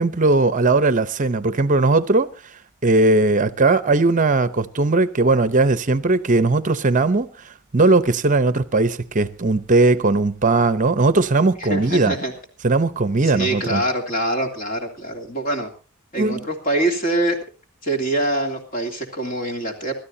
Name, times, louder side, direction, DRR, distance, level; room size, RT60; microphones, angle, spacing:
voice 1, 0.0-2.3 2.8-7.3 7.7-12.1 12.6-13.8 16.2-16.4, right 3 dB, 35° right, 0.8 m, -18 dB
voice 2, 11.6-12.3 13.2-15.7 16.1-17.4 17.8-19.9, right 1 dB, 40° left, 3.0 m, -24 dB
27.0 x 13.0 x 2.8 m
head